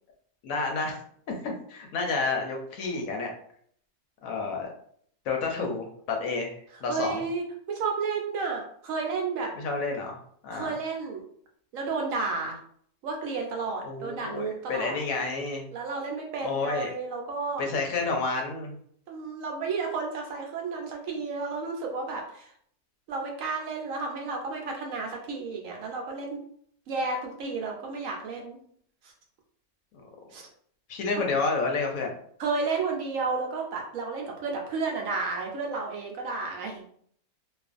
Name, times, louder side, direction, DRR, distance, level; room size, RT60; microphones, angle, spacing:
voice 1, 0.4-1.0 1.3-3.3 4.2-4.7 5.3-7.2 9.6-10.2 10.4-10.7 13.8-15.6 16.4-16.9 17.6-18.7 30.9-32.1, left 4 dB, 70° left, 2 dB, 0.9 m, -30 dB
voice 2, 6.7-9.5 10.5-11.2 11.7-12.6 13.0-15.0 15.7-17.6 19.1-22.5 23.1-26.4 26.9-28.6 29.0-29.1 30.3-30.5 32.4-36.9, right 4 dB, 70° right, 1 dB, 0.9 m, -32 dB
2.4 x 2.3 x 2.4 m, 0.62 s
omnidirectional pair, 1.6 m